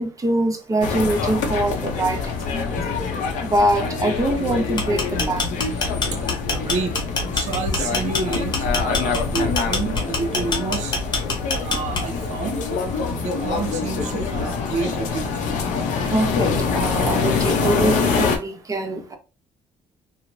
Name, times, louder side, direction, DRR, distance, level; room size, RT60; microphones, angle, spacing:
voice 1, 0.0-2.2 2.5-2.8 3.4-5.5 16.1-19.2, right 1 dB, 25° right, 0.7 m, -23 dB
sound 1, 0.8-18.4, left 5 dB, 75° left, 0.6 m, -25 dB
sound 2, 4.6-12.3, left 3 dB, 35° left, 1.0 m, -25 dB
voice 2, 6.5-6.9 7.3-11.0 11.5-15.4, right 4 dB, 65° right, 0.7 m, -29 dB
3.0 x 2.0 x 2.5 m
supercardioid pair, 75°, 13 cm